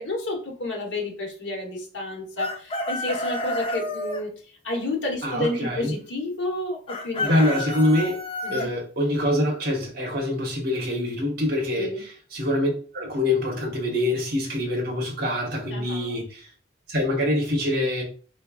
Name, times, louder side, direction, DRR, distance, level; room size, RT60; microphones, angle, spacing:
voice 1, 0.0-4.3 4.6-7.7 8.4-8.7 11.8-12.0 15.7-16.2, left 2 dB, 80° left, 1.2 m, -30 dB
Chicken rooster, 2.4-4.2 6.9-8.7, left 1 dB, 30° left, 0.6 m, -30 dB
voice 2, 5.2-5.9 7.2-8.2 8.5-16.4 16.9-18.0, left 1 dB, 60° right, 1.2 m, -25 dB
3.9 x 3.3 x 2.3 m
head